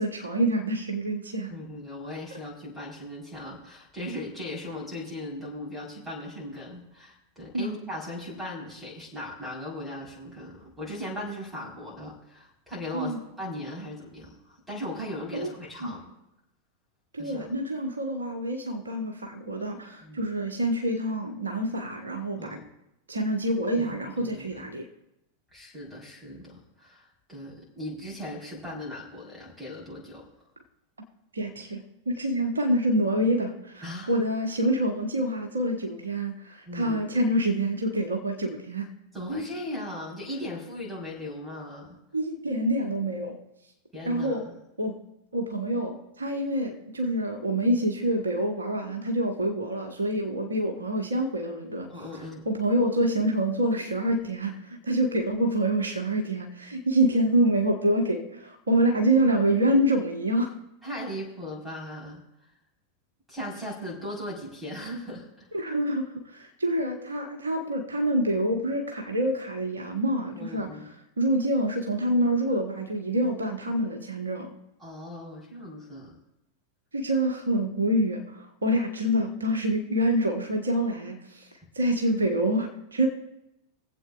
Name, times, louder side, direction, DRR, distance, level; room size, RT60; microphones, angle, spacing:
voice 1, 0.0-1.5 7.5-7.7 12.9-13.2 15.3-15.5 15.8-15.9 17.1-22.6 23.1-24.8 31.3-38.9 42.1-43.4 44.1-44.4 44.8-44.9 45.3-51.9 52.4-60.5 65.5-70.7 71.2-74.5 76.9-81.5 81.7-83.1, right 1 dB, 75° right, 2 dB, 1.2 m, -26 dB
voice 2, 1.5-16.1 17.2-17.5 20.0-20.2 22.4-22.7 23.8-24.6 25.5-30.2 33.8-34.1 36.7-37.0 39.1-42.0 43.9-44.4 51.9-52.4 60.8-62.2 63.3-65.5 70.3-70.9 74.8-76.1, left 1 dB, 5° right, -5 dB, 4.1 m, -38 dB
22.5 x 7.9 x 2.4 m, 0.86 s
figure-of-eight pair, 90°, 0 cm